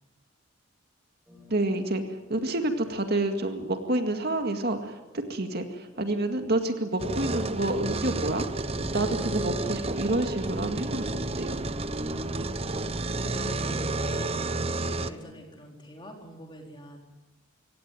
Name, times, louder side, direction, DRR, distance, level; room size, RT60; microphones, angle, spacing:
sound 1, 1.3-15.4, left 1 dB, 5° right, 7.1 m, -50 dB
voice 1, 1.5-8.5 8.9-11.1 11.4-11.6, right 2 dB, 50° right, 6 dB, 2.1 m, -28 dB
sound 2, 7.0-15.1, right 2 dB, 30° right, 0.8 m, -31 dB
voice 2, 12.2-12.8 13.2-14.4 14.8-17.0, equal, 25° left, 1 dB, 4.4 m, -45 dB
25.0 x 17.0 x 9.6 m, 1.1 s
head